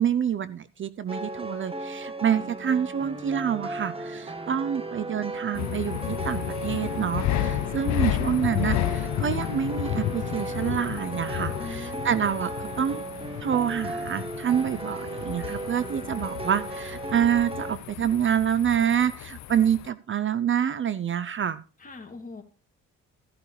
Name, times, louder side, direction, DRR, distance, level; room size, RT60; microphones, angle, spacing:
voice 1, 0.0-13.0 13.4-21.6, right 8 dB, 40° right, 15 dB, 0.6 m, -27 dB
sound 1, 1.1-17.8, right 2 dB, 20° right, 1.2 m, -36 dB
sound 2, 5.5-19.9, left 14 dB, 65° left, 0.6 m, -32 dB
voice 2, 11.6-12.2 21.8-22.4, left 3 dB, 25° left, 3 dB, 2.6 m, -41 dB
14.0 x 11.0 x 3.3 m, 0.36 s
cardioid pair, 90°, 30 cm